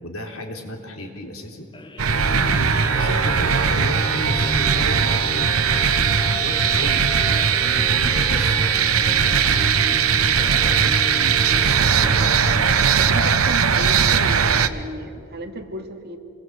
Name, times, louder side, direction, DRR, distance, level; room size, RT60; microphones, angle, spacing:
voice 1, 0.0-1.7 2.1-2.7 3.0-5.5 6.0-12.4, equal, 80° left, 2 dB, 3.7 m, -34 dB
sound 1, 1.7-14.0, left 2 dB, 20° left, 0.9 m, -34 dB
sound 2, 2.0-14.7, right 6 dB, 90° right, 1.0 m, -19 dB
voice 2, 13.0-16.2, right 1 dB, 50° right, 4 dB, 2.3 m, -32 dB
28.0 x 21.0 x 8.0 m, 2.5 s
head